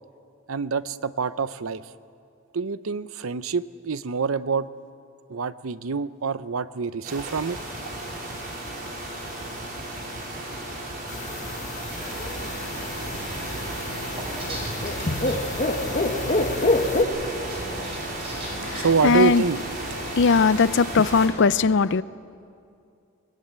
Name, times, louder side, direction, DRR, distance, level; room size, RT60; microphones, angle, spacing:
voice 1, 0.5-1.8 2.5-4.7 5.3-7.6 18.7-19.6, right 5 dB, 80° right, 15 dB, 0.7 m, -26 dB
sound 1, 7.0-21.3, right 1 dB, 45° right, 4.9 m, -34 dB
sound 2, 11.1-17.0, left 2 dB, 35° left, 1.5 m, -27 dB
sound 3, 14.2-15.3 17.3-18.8, right 1 dB, 30° right, 5.6 m, -37 dB
voice 2, 18.6-19.4 20.2-22.0, left 4 dB, 60° left, 17 dB, 0.5 m, -19 dB
22.5 x 20.5 x 8.9 m, 2.5 s
head